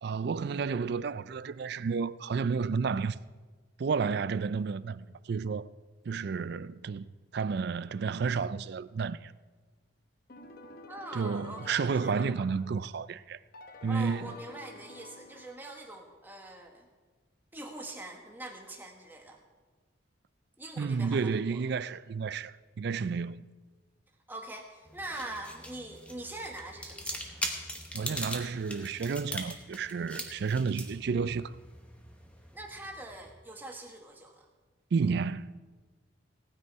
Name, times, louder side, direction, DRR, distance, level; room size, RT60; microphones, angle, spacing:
voice 1, 0.0-3.2 3.8-5.7 6.1-7.0 7.3-9.3 11.1-13.4 13.8-14.3 20.8-23.4 27.9-31.5 34.9-35.6, right 5 dB, 50° right, 0.3 m, -31 dB
sound 1, 10.3-12.9 13.5-16.0, left 3 dB, 45° left, 0.9 m, -50 dB
voice 2, 10.9-12.5 13.9-16.9 17.5-19.4 20.6-21.6 24.3-27.5 32.5-34.5, right 2 dB, 10° right, 1.3 m, -43 dB
sound 2, 24.9-33.3, equal, 5° left, 1.0 m, -41 dB
17.5 x 9.6 x 4.7 m
head